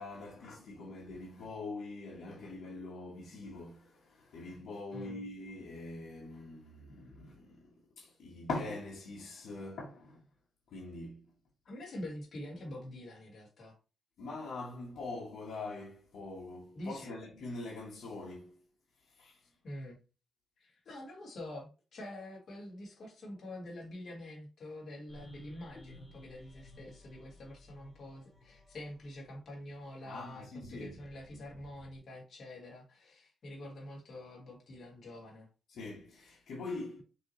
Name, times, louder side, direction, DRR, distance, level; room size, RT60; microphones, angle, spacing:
voice 1, 0.0-10.2 10.7-11.2 14.2-18.6 19.1-19.4 30.0-30.9 35.7-37.0, left 3 dB, 85° left, 1.3 m, -43 dB
voice 2, 4.9-5.2 11.7-13.8 16.7-17.1 19.6-20.0 20.6-35.5, left 1 dB, 50° left, 2.0 m, -46 dB
sound 1, 25.1-32.0, left 1 dB, 20° left, 1.7 m, -57 dB
6.1 x 2.9 x 3.0 m
wide cardioid pair, 150°, 0 cm